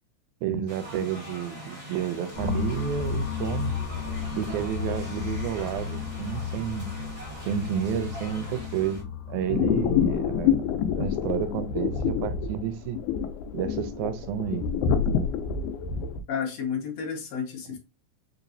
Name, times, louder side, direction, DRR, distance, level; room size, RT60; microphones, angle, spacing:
voice 1, 0.4-3.7 4.3-6.9 7.5-10.6 10.9-13.0 13.5-14.6, right 8 dB, 85° right, 1.9 m, -30 dB
sound 1, 0.7-9.0, equal, 20° right, 1.3 m, -42 dB
sound 2, 2.3-10.4, left 7 dB, 55° left, 0.8 m, -34 dB
sound 3, 9.5-16.2, left 7 dB, 85° left, 2.0 m, -27 dB
voice 2, 16.3-17.8, left 7 dB, 70° left, 1.8 m, -31 dB
4.7 x 2.9 x 2.6 m
omnidirectional pair, 3.4 m